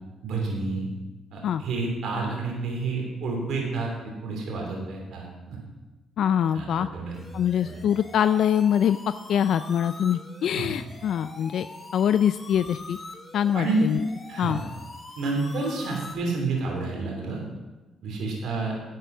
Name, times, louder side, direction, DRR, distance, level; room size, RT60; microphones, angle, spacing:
voice 1, 0.2-0.9 1.3-5.6 6.2-6.7 6.9-7.2 7.6-7.8 10.5-10.7 13.5-13.8 14.3-14.6 15.2-17.4 18.0-18.7, right 3 dB, 75° right, 0 dB, 2.9 m, -29 dB
voice 2, 6.2-6.9 7.3-9.0 9.3-11.7 11.9-13.0 13.3-14.0 14.4-14.6, left 9 dB, 70° left, 12 dB, 0.3 m, -24 dB
sound 1, 7.1-16.1, left 2 dB, 25° left, 1.8 m, -44 dB
10.5 x 7.9 x 6.1 m, 1.1 s
cardioid pair, 90°, 0 cm